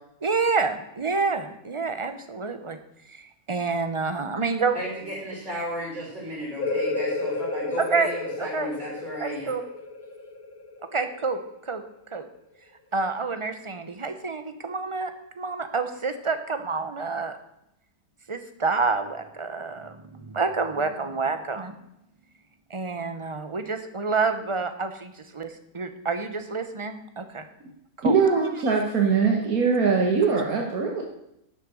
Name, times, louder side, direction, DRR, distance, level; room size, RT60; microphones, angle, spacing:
voice 1, 0.2-2.8 3.1-4.8 7.8-8.1 8.4-8.7 9.2-9.6 10.9-11.4 11.7-11.8 12.1-12.3 12.9-17.3 18.3-21.7 22.7-27.5 28.0-28.2, right 4 dB, 25° right, 8 dB, 0.8 m, -28 dB
voice 2, 4.7-9.5, equal, 55° right, -9 dB, 4.5 m, -34 dB
sound 1, 6.6-12.0, left 3 dB, 80° left, 2.0 m, -32 dB
voice 3, 28.0-31.0, right 5 dB, 80° right, 0 dB, 1.8 m, -22 dB
12.0 x 6.8 x 6.3 m, 0.81 s
omnidirectional pair, 1.5 m